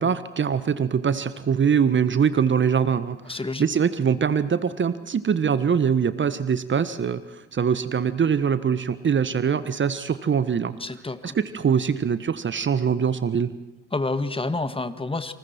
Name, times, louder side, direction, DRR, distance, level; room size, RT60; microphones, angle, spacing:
voice 1, 0.0-3.2 3.6-10.7 11.2-13.5, right 7 dB, 30° right, 13 dB, 1.4 m, -23 dB
voice 2, 3.3-3.7 10.8-11.4 13.9-15.3, left 2 dB, 15° left, 11 dB, 1.9 m, -28 dB
29.0 x 27.0 x 4.6 m, 0.95 s
hypercardioid pair, 55°, 36 cm